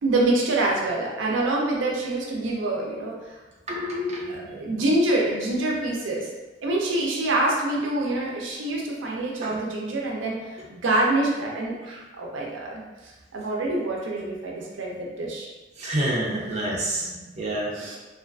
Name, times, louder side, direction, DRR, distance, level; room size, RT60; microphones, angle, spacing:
voice 1, 0.0-3.4 4.3-6.3 6.6-15.5 17.7-18.0, right 2 dB, 90° right, -2 dB, 0.5 m, -26 dB
voice 2, 3.7-4.8 15.8-17.7, right 1 dB, 40° right, -5 dB, 0.5 m, -28 dB
2.4 x 2.4 x 2.3 m, 1.2 s
head